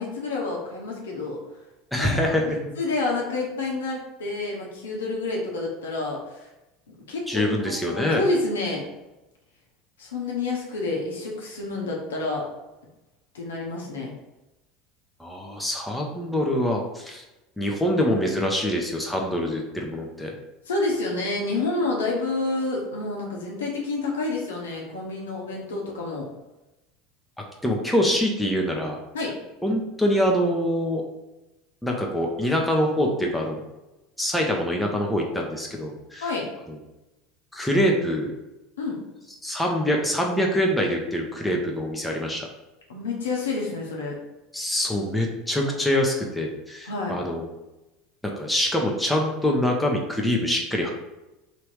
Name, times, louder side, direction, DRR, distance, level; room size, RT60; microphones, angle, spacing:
voice 1, 0.0-1.4 2.0-6.5 7.1-8.8 10.0-12.4 13.3-14.1 20.7-26.3 29.1-29.3 36.2-36.5 38.8-39.0 42.9-44.2 46.8-47.2, left 3 dB, 80° left, -2 dB, 1.0 m, -29 dB
voice 2, 1.9-2.7 7.3-8.2 15.2-17.2 17.6-20.3 27.6-29.0 29.6-31.0 31.8-33.6 34.2-36.2 37.5-38.3 39.4-42.5 44.5-47.5 48.2-50.9, equal, 5° left, 0 dB, 0.9 m, -24 dB
3.4 x 2.9 x 4.7 m, 0.99 s
hypercardioid pair, 75°, 0 cm